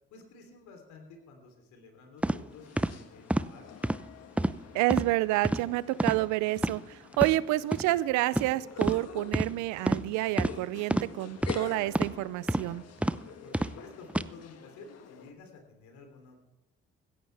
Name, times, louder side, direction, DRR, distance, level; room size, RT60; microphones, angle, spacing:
voice 1, 0.1-3.6 13.4-16.4, left 4 dB, 75° left, 4 dB, 3.3 m, -51 dB
sound 1, 2.2-2.4 2.8-2.9 3.3-3.5 3.8-4.0 4.4-4.6 4.9-5.1 5.4-5.6 6.0-6.2 6.6-6.7 7.1-7.3 7.7-7.8 8.3-8.5 8.8-9.0 9.3-9.5 9.9-10.0 10.4-10.5 10.9-11.1 11.4-11.6 11.9-12.1 12.5-12.7 13.0-13.2 13.5-13.7 14.1-14.3, right 1 dB, 5° right, 0.6 m, -28 dB
sound 2, 2.5-15.3, left 8 dB, 60° left, 1.4 m, -48 dB
voice 2, 4.7-12.8, right 18 dB, 75° right, 19 dB, 0.6 m, -29 dB
16.5 x 14.0 x 3.4 m, 0.97 s
hypercardioid pair, 50°, 29 cm